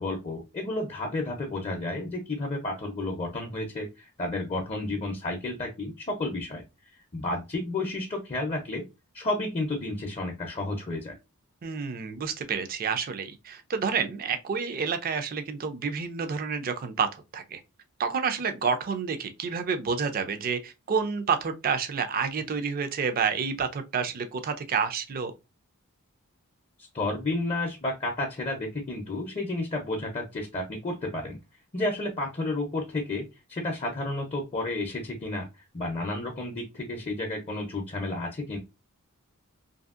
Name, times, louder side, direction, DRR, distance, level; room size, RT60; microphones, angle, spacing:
voice 1, 0.0-6.6 7.1-8.8 9.1-11.1 26.9-31.4 31.7-35.5 35.7-38.6, left 2 dB, 30° left, 0.5 m, -31 dB
voice 2, 11.6-17.6 18.0-25.3, right 6 dB, 40° right, 0.4 m, -29 dB
2.7 x 2.6 x 2.4 m
head